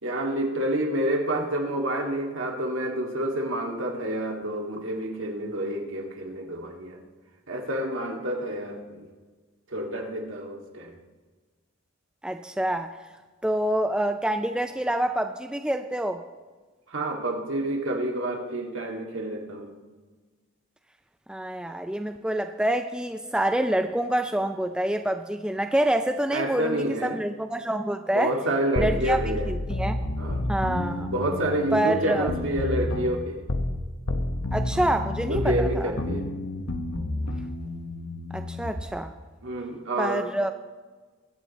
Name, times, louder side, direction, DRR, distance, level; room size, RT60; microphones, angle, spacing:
voice 1, 0.0-7.0 7.5-9.1 9.7-10.9 16.9-19.7 26.3-27.2 28.1-29.5 30.2-30.4 31.1-33.4 35.3-36.3 39.4-40.3, right 1 dB, 70° right, 1 dB, 2.0 m, -28 dB
voice 2, 12.2-13.0 13.4-16.2 21.3-28.3 28.8-29.2 29.5-30.0 30.5-31.1 31.7-32.3 34.5-35.9 38.3-39.1 40.0-40.5, right 1 dB, 5° right, 7 dB, 0.4 m, -27 dB
sound 1, 28.8-33.8 34.1-38.9, left 1 dB, 70° left, 1.1 m, -30 dB
21.5 x 9.1 x 4.1 m, 1.4 s
head